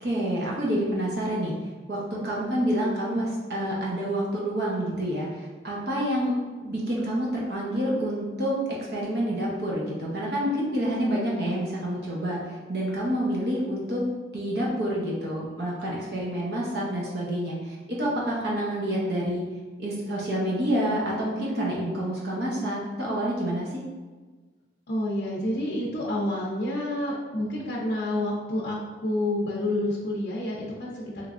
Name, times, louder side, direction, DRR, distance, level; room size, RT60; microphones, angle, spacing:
voice 1, 0.0-1.5 1.9-6.3 6.6-8.6 8.9-12.4 12.7-14.0 14.3-19.4 19.8-23.7, equal, 65° right, -5 dB, 0.7 m, -28 dB
voice 2, 24.9-31.3, left 1 dB, 60° left, -5 dB, 0.5 m, -29 dB
3.3 x 3.0 x 2.5 m, 1.3 s
head